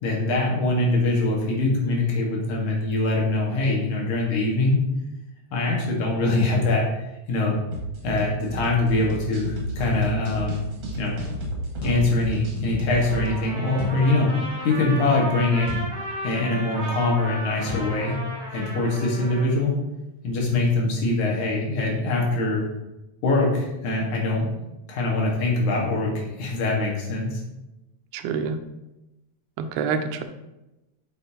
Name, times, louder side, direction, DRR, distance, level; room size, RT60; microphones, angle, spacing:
voice 1, 0.0-4.9 5.5-7.6 8.0-10.7 11.0-11.2 11.8-14.3 14.6-15.7 16.2-18.2 18.5-19.8 20.2-22.7 23.2-24.5 24.9-27.4, left 2 dB, 80° left, -2 dB, 3.1 m, -23 dB
sound 1, 7.7-13.3, right 1 dB, 55° right, 2.5 m, -31 dB
sound 2, 9.8-10.0 11.8-12.1 13.8-14.0 15.7-15.9 17.7-18.0, left 3 dB, 45° left, 3.5 m, -31 dB
Trumpet, 13.0-19.5, right 1 dB, 25° right, 1.2 m, -35 dB
voice 2, 28.1-28.6 29.6-30.2, right 6 dB, 85° right, 8 dB, 2.1 m, -26 dB
8.6 x 6.7 x 2.8 m, 0.98 s
omnidirectional pair, 3.4 m